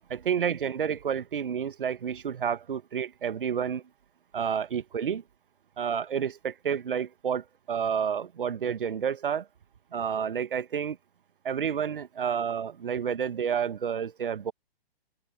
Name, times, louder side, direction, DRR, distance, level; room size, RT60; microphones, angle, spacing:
voice 1, 0.1-3.8 4.3-5.2 5.8-9.5 9.9-11.0 11.4-14.5, right 7 dB, 60° right, 1.1 m, -30 dB
open air
figure-of-eight pair, 125°, 31 cm